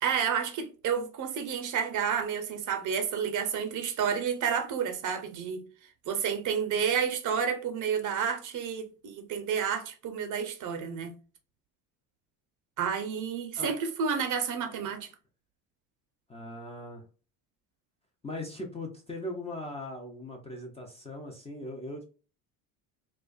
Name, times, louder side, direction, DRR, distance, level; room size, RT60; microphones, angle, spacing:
voice 1, 0.0-5.6 6.1-11.1 12.8-15.1, right 7 dB, 45° right, 0.6 m, -30 dB
voice 2, 16.3-17.0 18.2-22.1, left 1 dB, 15° left, 0.4 m, -39 dB
2.4 x 2.2 x 2.3 m
supercardioid pair, 90°, 42 cm